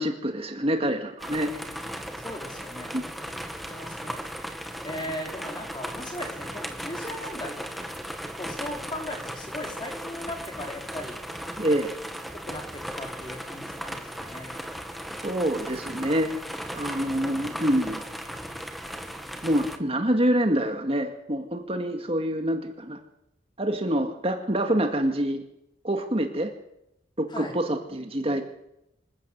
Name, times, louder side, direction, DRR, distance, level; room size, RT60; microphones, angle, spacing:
voice 1, 0.0-1.5 2.9-3.0 11.6-12.0 15.2-16.4 16.7-18.0 19.4-23.0 23.6-25.4 25.8-26.5 27.2-28.4, right 1 dB, 30° right, 5 dB, 2.1 m, -26 dB
sound 1, 1.2-19.8, equal, ahead, 1.9 m, -37 dB
voice 2, 2.2-4.2 4.8-7.9 8.4-11.2 12.5-14.6 27.3-27.5, left 1 dB, 25° left, 2 dB, 4.9 m, -38 dB
27.0 x 15.0 x 8.2 m, 0.83 s
head